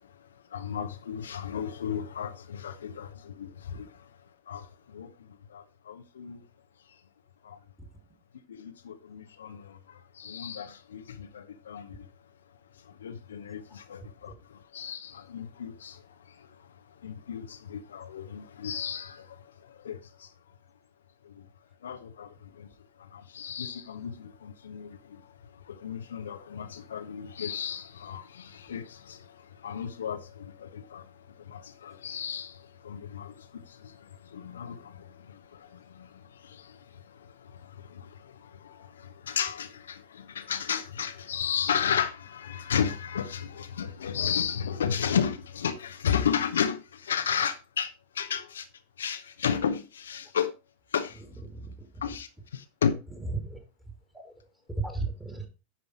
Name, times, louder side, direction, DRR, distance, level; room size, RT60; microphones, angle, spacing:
voice 1, 0.0-4.1 4.5-6.4 7.4-7.6 8.5-12.1 12.8-20.3 21.2-21.5 21.8-48.7 49.0-50.5 50.9-51.2 52.0-53.0, left 8 dB, 65° left, 0.7 m, -34 dB
voice 2, 51.5-51.9 53.2-53.6 54.1-54.4 54.8-55.5, right 3 dB, 5° right, 2.5 m, -34 dB
10.0 x 5.4 x 4.6 m
figure-of-eight pair, 90°, 0 cm